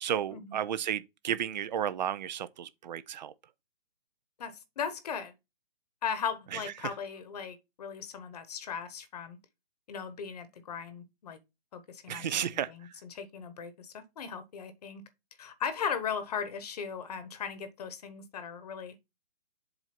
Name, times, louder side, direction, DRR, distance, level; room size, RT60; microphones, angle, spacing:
voice 1, 0.0-3.3 12.1-12.7, right 9 dB, 45° right, 0.5 m, -32 dB
voice 2, 4.4-5.3 6.0-9.4 9.9-11.4 11.7-15.0 15.4-18.9, left 7 dB, 40° left, 1.1 m, -38 dB
7.7 x 2.6 x 5.9 m
hypercardioid pair, 155°, 31 cm